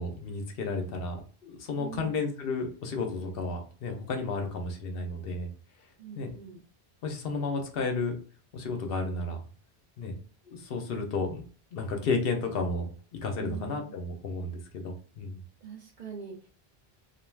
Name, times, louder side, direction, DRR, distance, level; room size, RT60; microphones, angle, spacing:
voice 1, 0.0-5.5 6.2-6.3 7.0-8.1 8.5-9.4 10.0-10.1 10.5-11.4 11.7-15.4, left 3 dB, 65° left, 4 dB, 0.8 m, -32 dB
voice 2, 1.7-2.2 6.0-6.6 13.4-14.0 15.6-16.5, right 6 dB, 55° right, -3 dB, 0.7 m, -43 dB
2.4 x 2.3 x 3.2 m, 0.42 s
omnidirectional pair, 1.1 m